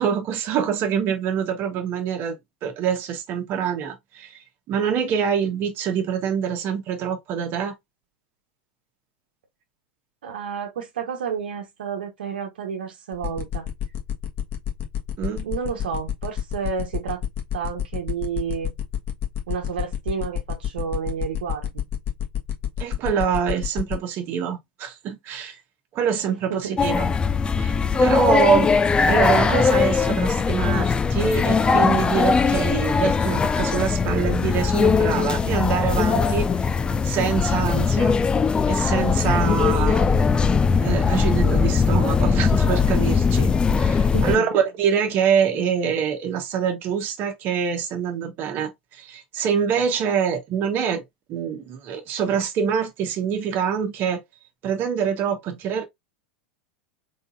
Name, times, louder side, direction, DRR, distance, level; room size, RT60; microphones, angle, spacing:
voice 1, 0.0-2.4 2.6-7.7 15.2-15.4 22.8-25.6 25.9-27.0 27.6-28.7 29.0-36.5 37.0-38.2 38.7-40.1 40.8-51.0 51.3-54.2 54.6-55.8, right 7 dB, 40° right, 1.2 m, -25 dB
voice 2, 10.2-13.6 15.4-17.2 17.5-18.7 19.5-21.8 26.5-26.8 44.0-44.5, right 7 dB, 70° right, 1.1 m, -30 dB
sound 1, 13.1-24.0, left 10 dB, 40° left, 1.5 m, -28 dB
sound 2, 26.8-44.4, left 5 dB, 20° left, 0.4 m, -20 dB
3.9 x 3.7 x 2.6 m
hypercardioid pair, 90°, 5 cm